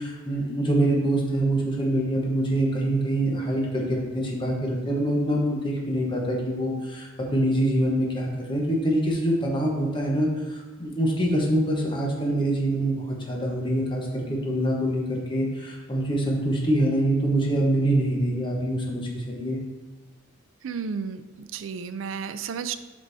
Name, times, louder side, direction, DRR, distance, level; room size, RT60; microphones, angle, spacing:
voice 1, 0.0-19.6, right 1 dB, 25° left, -1 dB, 1.1 m, -25 dB
voice 2, 20.6-22.7, right 6 dB, 70° right, 11 dB, 0.4 m, -32 dB
7.9 x 5.3 x 2.7 m, 1.3 s
head